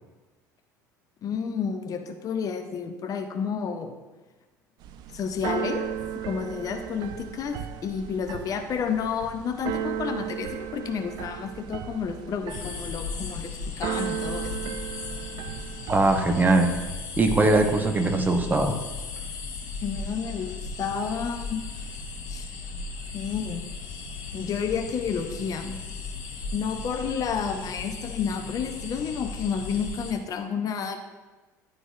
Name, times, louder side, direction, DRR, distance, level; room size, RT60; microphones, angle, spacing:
voice 1, 1.2-4.0 5.1-5.9 6.1-7.6 7.8-14.8 19.8-21.6 22.3-22.5 23.1-23.6 24.3-25.8 26.5-31.0, left 6 dB, 35° left, 5 dB, 0.6 m, -30 dB
Keyboard (musical), 4.8-16.9, right 10 dB, 45° right, 0.5 m, -36 dB
sound 1, 12.5-30.1, left 4 dB, 65° left, 1.4 m, -36 dB
voice 2, 15.9-16.7 17.2-18.8, right 2 dB, 20° right, 4 dB, 0.8 m, -21 dB
11.0 x 4.0 x 2.4 m, 1.2 s
figure-of-eight pair, 65°, 10 cm